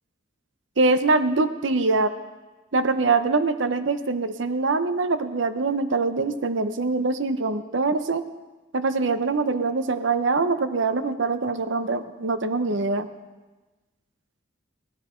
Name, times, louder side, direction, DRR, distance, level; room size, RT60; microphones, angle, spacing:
voice 1, 0.8-2.1 2.7-8.2 8.7-13.1, right 3 dB, 65° right, 11 dB, 0.7 m, -23 dB
17.0 x 13.5 x 4.4 m, 1.2 s
head